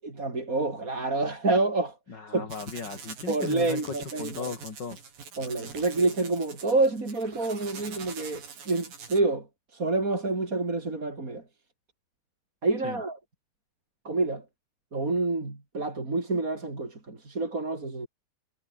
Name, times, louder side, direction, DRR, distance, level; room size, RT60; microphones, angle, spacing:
voice 1, 0.0-1.9 2.3-2.5 3.3-4.4 5.4-9.5 9.7-11.4 12.6-13.2 14.0-14.4 14.9-18.1, right 3 dB, 20° right, 4.0 m, -28 dB
voice 2, 2.1-5.0 12.8-13.0, left 5 dB, 30° left, 3.3 m, -36 dB
sound 1, 2.5-9.2, right 6 dB, 55° right, 6.4 m, -44 dB
omnidirectional pair, 4.6 m